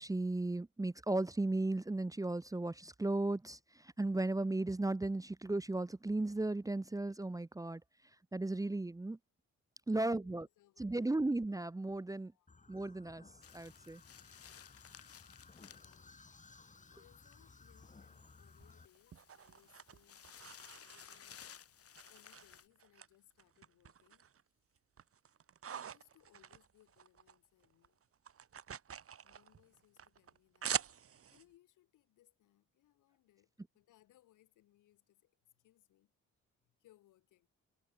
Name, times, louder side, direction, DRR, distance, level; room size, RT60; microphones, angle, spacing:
voice 1, 0.0-7.8 8.3-9.2 9.9-10.5 10.8-12.3 12.7-13.2 13.5-14.0, right 2 dB, 10° right, 0.9 m, -35 dB
voice 2, 9.9-11.3 12.3-12.5 14.6-14.9 15.4-16.2 16.9-20.2 20.7-21.6 22.1-24.3 25.7-28.0 29.2-36.1 36.6-37.5, left 14 dB, 85° left, 6.9 m, -69 dB
sound 1, 12.5-18.9, left 4 dB, 25° left, 4.7 m, -60 dB
sound 2, 13.4-22.7, left 9 dB, 50° left, 1.7 m, -58 dB
sound 3, 18.6-21.5 22.0-23.1 23.4-24.4 24.8-27.4 27.6-31.4, right 8 dB, 50° right, 2.2 m, -45 dB
cardioid pair, 90°, 30 cm